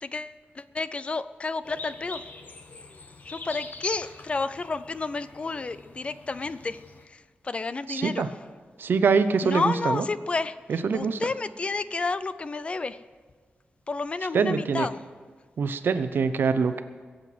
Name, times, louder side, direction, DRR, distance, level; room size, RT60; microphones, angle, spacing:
voice 1, 0.0-2.2 3.2-6.8 7.4-8.3 9.4-10.6 10.9-13.0 13.9-15.0, left 3 dB, 30° left, 14 dB, 0.4 m, -30 dB
sound 1, 1.6-7.0, left 3 dB, 50° left, 1.1 m, -45 dB
voice 2, 7.9-8.3 8.8-10.0 10.7-11.2 14.3-14.9 15.6-16.8, right 5 dB, 70° right, 11 dB, 0.8 m, -24 dB
22.0 x 7.9 x 6.1 m, 1.5 s
wide cardioid pair, 165°, 4 cm